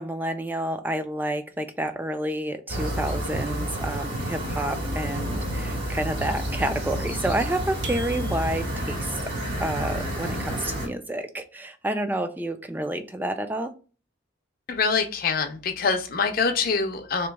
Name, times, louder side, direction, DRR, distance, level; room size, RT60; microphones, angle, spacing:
voice 1, 0.0-9.1 9.6-13.7, right 1 dB, 10° right, 8 dB, 0.3 m, -29 dB
sound 1, 2.7-10.9, equal, 50° right, 1.7 m, -30 dB
sound 2, 7.8-8.9, right 4 dB, 65° right, 0.6 m, -40 dB
voice 2, 14.7-17.3, left 5 dB, 50° left, 6 dB, 0.5 m, -25 dB
3.0 x 3.0 x 3.4 m, 0.36 s
head